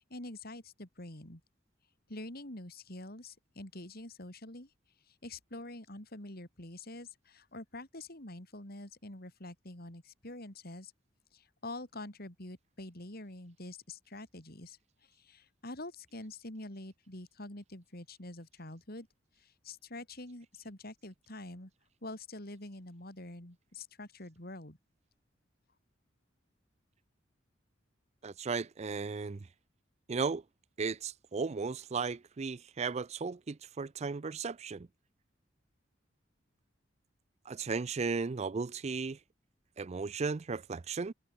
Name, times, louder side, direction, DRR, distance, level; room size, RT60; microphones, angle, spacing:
voice 1, 0.0-1.4 2.1-4.7 5.1-10.9 11.3-19.1 19.4-21.7 22.0-24.8, left 2 dB, 55° left, 5.3 m, -46 dB
voice 2, 28.2-29.5 30.1-30.4 30.8-34.9 37.5-39.2 39.8-41.1, right 4 dB, 35° right, 0.5 m, -35 dB
head